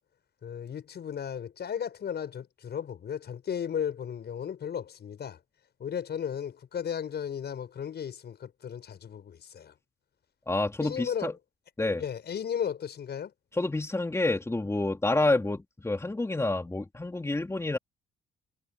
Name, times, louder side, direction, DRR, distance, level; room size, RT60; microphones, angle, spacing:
voice 1, 0.4-5.4 5.8-9.7 10.8-11.3 12.0-13.3, left 8 dB, 55° left, 6.2 m, -35 dB
voice 2, 10.5-11.3 11.8-12.0 13.5-17.8, left 2 dB, 15° left, 3.1 m, -28 dB
cardioid pair, 90°, 20 cm